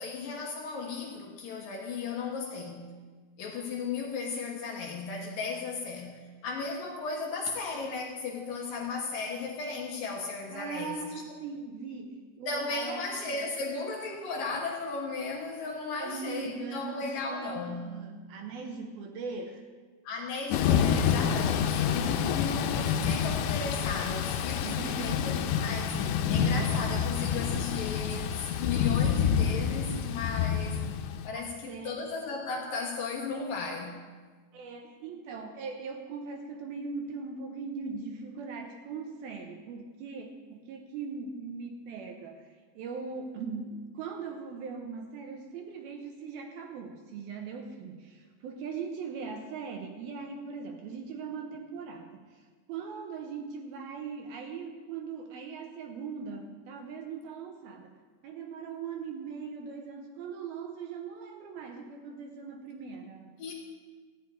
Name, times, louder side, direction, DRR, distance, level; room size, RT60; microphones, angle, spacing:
voice 1, 0.0-2.9 3.4-11.2 12.5-17.9 20.0-30.9 31.2-34.0 63.4-63.5, left 4 dB, 65° left, 0 dB, 2.5 m, -35 dB
voice 2, 10.5-13.4 16.0-19.6 21.8-22.2 24.6-25.2 31.3-32.0 34.5-57.9 58.2-63.4, right 5 dB, 70° right, 4 dB, 2.4 m, -40 dB
Thunder / Rain, 20.5-31.3, left 7 dB, 90° left, 2.9 m, -28 dB
14.0 x 6.9 x 9.3 m, 1.4 s
omnidirectional pair, 5.0 m